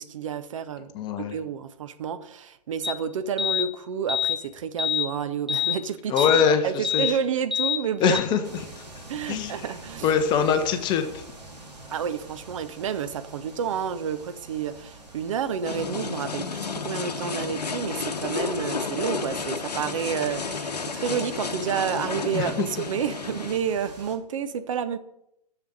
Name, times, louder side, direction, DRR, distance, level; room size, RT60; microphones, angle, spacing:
voice 1, 0.0-0.9 1.3-6.3 6.6-8.2 9.1-10.1 11.9-25.0, right 7 dB, 50° right, 11 dB, 0.8 m, -30 dB
voice 2, 0.9-1.4 6.1-7.1 8.0-8.4 8.8-8.9 9.3-9.6 10.0-11.2 22.3-22.7, left 7 dB, 20° left, 8 dB, 0.9 m, -23 dB
sound 1, 2.8-2.9 3.4-3.7 4.1-4.4 4.8-5.1 5.5-5.8 6.2-6.5 6.8-7.1 7.5-7.8 8.1-8.2, left 9 dB, ahead, 0.6 m, -25 dB
sound 2, 8.4-24.2, right 2 dB, 85° right, 2.1 m, -46 dB
sound 3, 15.6-23.6, left 5 dB, 75° left, 0.9 m, -32 dB
7.0 x 6.8 x 7.9 m, 0.79 s
figure-of-eight pair, 120°, 21 cm